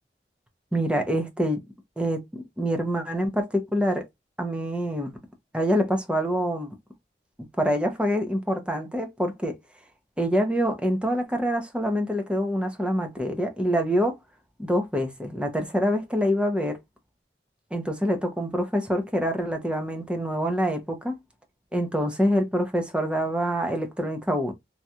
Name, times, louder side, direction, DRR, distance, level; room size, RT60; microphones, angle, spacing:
voice 1, 0.7-1.6 2.0-4.0 4.4-5.1 5.5-6.7 7.6-9.5 10.2-14.2 14.6-16.8 17.7-21.1 21.7-24.5, equal, 5° right, 0.7 m, -26 dB
3.1 x 2.7 x 2.3 m
head